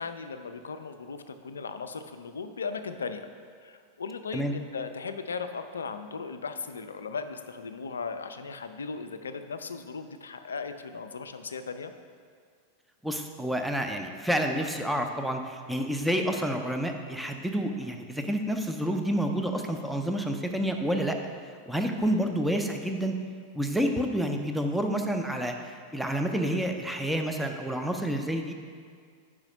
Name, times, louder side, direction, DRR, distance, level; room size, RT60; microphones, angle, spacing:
voice 1, 0.0-3.3 3.6-11.9 21.9-22.2, left 5 dB, 70° left, 9 dB, 0.3 m, -37 dB
voice 2, 13.0-21.2 21.7-23.1 23.5-25.5 25.9-28.5, equal, ahead, 4 dB, 0.5 m, -29 dB
4.9 x 4.8 x 5.3 m, 2.1 s
figure-of-eight pair, 90°, 0 cm